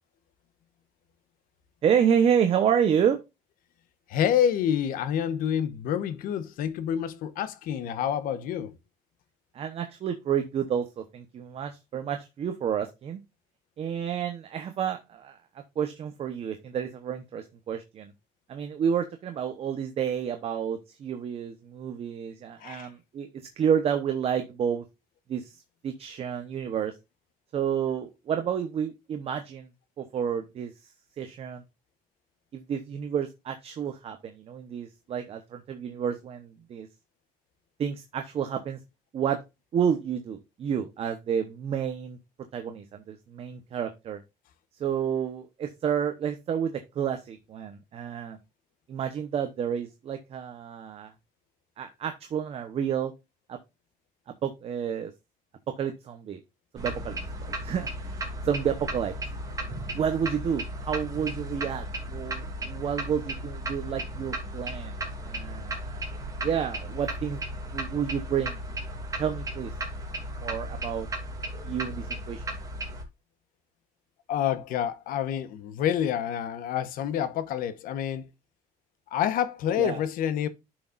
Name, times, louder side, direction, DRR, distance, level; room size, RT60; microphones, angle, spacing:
voice 1, 1.8-3.2 9.5-13.2 13.8-18.1 18.5-23.3 23.6-24.8 25.3-25.5 25.8-26.9 27.5-29.7 30.0-30.7 31.2-31.6 32.5-36.9 37.8-38.8 39.1-39.4 39.7-42.2 42.5-44.2 44.8-48.4 48.9-51.1 51.8-53.1 53.5-53.6 54.4-55.1 55.8-56.4 56.7-59.1 59.9-65.0 65.2-66.0 66.4-67.5 67.7-68.6 69.2-69.7 70.4-71.1 71.6-72.4 79.8-80.0, right 8 dB, 40° right, 1.0 m, -30 dB
voice 2, 4.1-8.7 22.6-22.9 74.3-78.3 79.1-80.5, left 9 dB, 75° left, 1.1 m, -28 dB
sound 1, 56.8-73.0, right 1 dB, 25° right, 2.8 m, -35 dB
11.0 x 6.2 x 2.5 m
cardioid pair, 150°, 15 cm